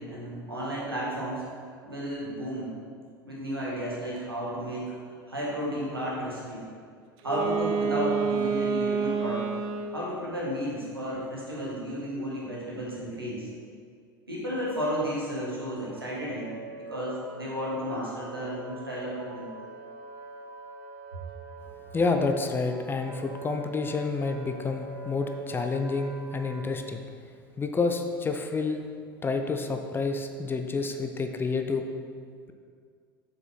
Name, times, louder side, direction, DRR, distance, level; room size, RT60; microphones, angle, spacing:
voice 1, 0.0-1.5 1.8-2.7 3.2-4.9 5.3-6.6 7.2-9.5 9.9-13.5 14.3-16.5 16.9-19.5, equal, 85° right, -6 dB, 2.0 m, -33 dB
Wind instrument woodwind instrument, 7.2-10.1, right 5 dB, 50° right, 0.7 m, -28 dB
Wind instrument woodwind instrument 2, 15.8-26.7, right 3 dB, 20° right, 1.6 m, -44 dB
voice 2, 21.9-27.0 27.6-28.8 29.2-31.8, left 4 dB, 20° left, 5 dB, 0.6 m, -29 dB
7.3 x 6.7 x 4.2 m, 2.1 s
figure-of-eight pair, 75°, 12 cm